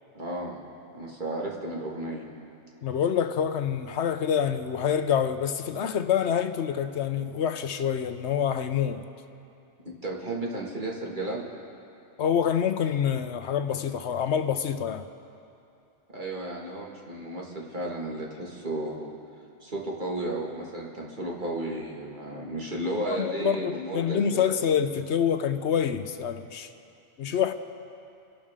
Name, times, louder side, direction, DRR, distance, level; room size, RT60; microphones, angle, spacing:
voice 1, 0.1-2.3 9.8-11.5 16.1-19.1 19.6-24.6, right 1 dB, 45° right, 2.2 m, -33 dB
voice 2, 2.8-9.0 12.2-15.1 23.1-26.7 27.2-27.5, left 8 dB, 75° left, 1.0 m, -26 dB
28.0 x 12.0 x 3.7 m
omnidirectional pair, 1.2 m